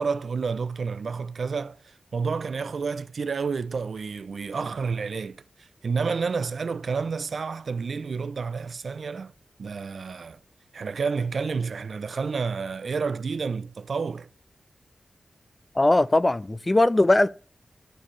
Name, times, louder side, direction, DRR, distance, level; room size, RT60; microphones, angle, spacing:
voice 1, 0.0-9.3 9.6-10.4 10.7-14.3, right 5 dB, 65° right, 0.3 m, -30 dB
voice 2, 15.8-17.3, left 2 dB, 20° left, 0.4 m, -20 dB
11.5 x 4.2 x 3.1 m
wide cardioid pair, 90°, 0 cm